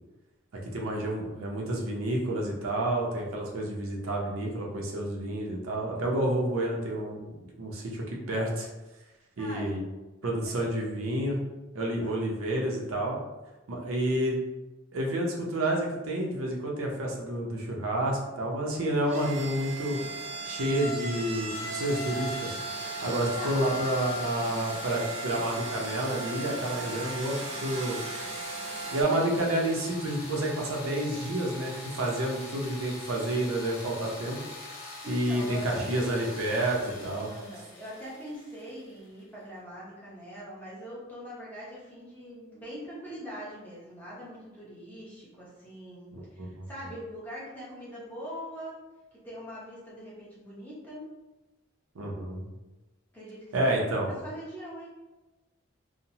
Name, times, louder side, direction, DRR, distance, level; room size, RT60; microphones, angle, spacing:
voice 1, 0.7-7.3 7.6-8.7 9.4-9.8 10.2-11.4 11.7-13.2 13.7-14.4 14.9-20.0 20.4-22.6 23.0-28.0 28.9-34.4 35.1-37.3 46.1-46.7 51.9-52.5 53.5-54.1, right 1 dB, 90° right, -1 dB, 0.6 m, -29 dB
voice 2, 9.4-9.7 12.0-12.2 23.3-23.6 29.1-29.3 34.8-35.8 37.3-48.8 49.1-51.1 53.1-54.9, equal, 10° left, -7 dB, 0.6 m, -42 dB
sound 1, 18.7-29.0, right 2 dB, 30° right, 0.4 m, -37 dB
sound 2, 21.5-39.2, left 1 dB, 65° left, 0.7 m, -43 dB
2.8 x 2.0 x 2.7 m, 1.1 s
head